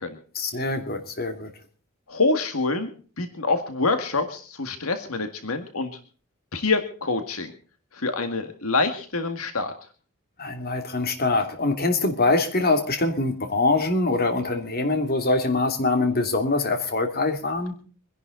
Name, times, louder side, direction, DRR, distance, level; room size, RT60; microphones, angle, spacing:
voice 1, 0.3-1.5 10.4-17.7, left 3 dB, 45° left, 2.8 m, -24 dB
voice 2, 2.1-2.9 3.2-5.9 6.5-7.5 8.0-9.7, left 3 dB, 85° left, 1.9 m, -26 dB
25.0 x 11.0 x 3.9 m
head